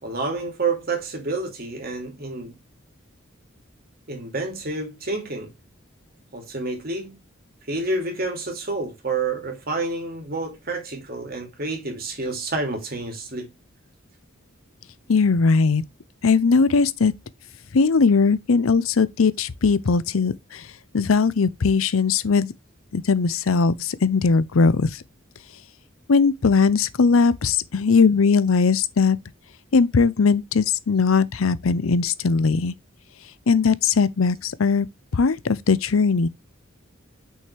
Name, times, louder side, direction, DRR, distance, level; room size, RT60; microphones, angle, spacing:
voice 1, 0.0-2.6 4.1-5.5 6.3-7.2 7.7-13.5, right 3 dB, 45° right, 2.8 m, -29 dB
voice 2, 15.1-15.8 16.2-17.1 17.7-20.6 20.9-22.5 22.9-24.9 26.1-29.2 29.7-32.7 33.5-34.9 35.1-36.3, left 4 dB, 85° left, 0.6 m, -19 dB
6.4 x 5.5 x 3.3 m
head